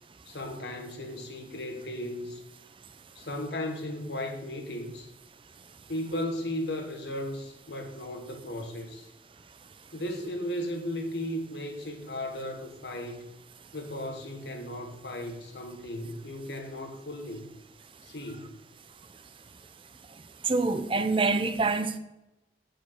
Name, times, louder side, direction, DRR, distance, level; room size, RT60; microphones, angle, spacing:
voice 1, 0.3-2.4 3.1-5.1 5.9-9.1 9.9-13.3 13.7-17.5 18.0-18.5, left 1 dB, 70° left, 1.4 m, -36 dB
voice 2, 20.4-22.0, right 3 dB, 30° right, 0.5 m, -26 dB
8.8 x 5.0 x 6.1 m
head